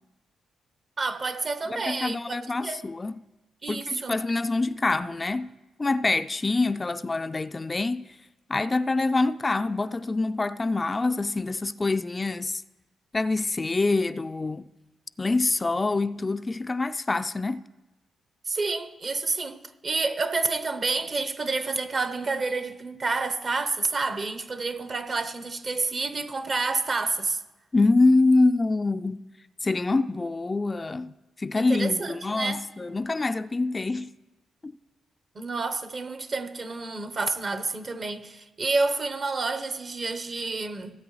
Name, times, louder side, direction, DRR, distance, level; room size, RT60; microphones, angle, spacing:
voice 1, 1.0-2.8 3.6-4.2 18.5-27.4 31.6-32.6 35.3-40.9, right 3 dB, 50° right, 0.8 m, -29 dB
voice 2, 1.7-3.2 3.7-8.2 8.5-12.6 13.1-14.6 15.2-17.7 27.7-29.2 29.6-34.2 34.6-34.8, left 3 dB, 30° left, 0.3 m, -25 dB
17.0 x 8.2 x 3.1 m
supercardioid pair, 50°, 0 cm